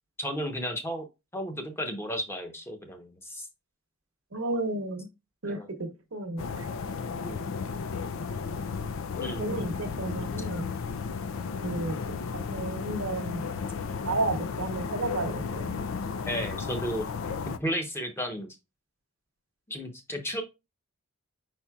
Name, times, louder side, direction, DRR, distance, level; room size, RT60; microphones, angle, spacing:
voice 1, 0.2-1.1 1.3-3.5 5.5-5.7 7.2-7.5 9.2-9.8 16.2-17.1 17.6-18.6 19.7-20.4, equal, 10° left, 0.9 m, -33 dB
voice 2, 4.3-5.1 5.4-6.7 9.1-10.7 11.6-11.9 12.3-13.5 14.0-15.7, right 2 dB, 65° right, 1.0 m, -32 dB
sound 1, 6.4-17.6, left 5 dB, 65° left, 0.4 m, -34 dB
5.2 x 4.3 x 2.3 m
head